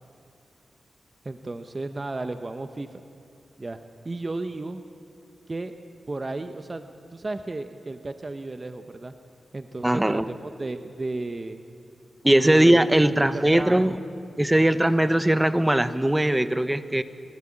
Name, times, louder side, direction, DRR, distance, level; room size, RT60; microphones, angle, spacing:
voice 1, 1.2-3.0 3.6-4.8 5.5-5.7 6.1-6.8 7.1-9.1 9.5-11.6 12.4-13.8, right 2 dB, 35° right, 8 dB, 0.9 m, -34 dB
voice 2, 9.8-10.3 12.2-13.9 14.4-17.0, right 1 dB, 15° right, 12 dB, 1.0 m, -20 dB
29.5 x 12.5 x 8.8 m, 2.5 s
cardioid pair, 60°, 0 cm